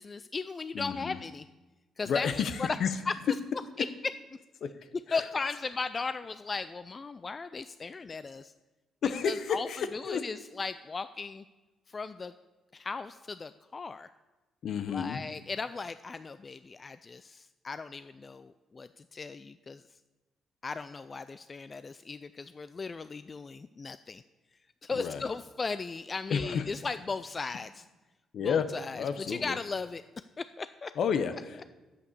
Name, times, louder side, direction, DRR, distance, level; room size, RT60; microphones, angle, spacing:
voice 1, 0.0-1.5 2.0-2.7 3.1-3.2 3.8-3.9 5.1-8.5 9.2-11.4 11.9-12.3 12.7-14.1 14.9-20.0 20.6-24.2 24.8-27.9 28.4-30.0 30.4-30.9, left 4 dB, 35° left, 13 dB, 0.3 m, -37 dB
voice 2, 0.7-1.2 2.1-2.9 4.6-4.7 5.1-5.2 9.0-10.2 14.6-15.2 24.9-25.3 26.3-26.6 28.3-28.7 28.9-29.6 31.0-31.6, left 7 dB, 65° left, 11 dB, 1.0 m, -31 dB
9.7 x 8.2 x 6.7 m, 1.2 s
cardioid pair, 90°, 0 cm